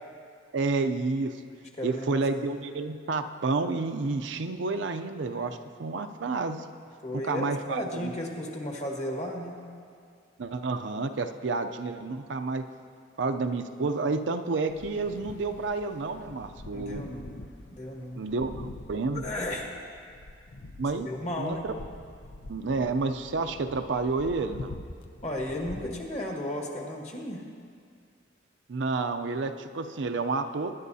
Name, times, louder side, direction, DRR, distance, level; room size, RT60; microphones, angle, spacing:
voice 1, 0.5-1.4 1.8-6.6 7.2-8.1 10.4-12.6 13.2-17.0 18.2-19.2 20.8-21.1 21.4-21.7 22.5-24.8 28.7-30.7, right 3 dB, 75° right, 7 dB, 0.5 m, -30 dB
voice 2, 1.8-2.2 7.0-9.6 16.7-17.4 17.7-18.2 19.1-19.7 21.0-21.7 25.2-27.4, left 1 dB, 40° left, 0 dB, 1.5 m, -34 dB
sound 1, 14.7-25.8, left 2 dB, 75° left, 0.6 m, -45 dB
19.5 x 10.5 x 2.7 m, 2.2 s
head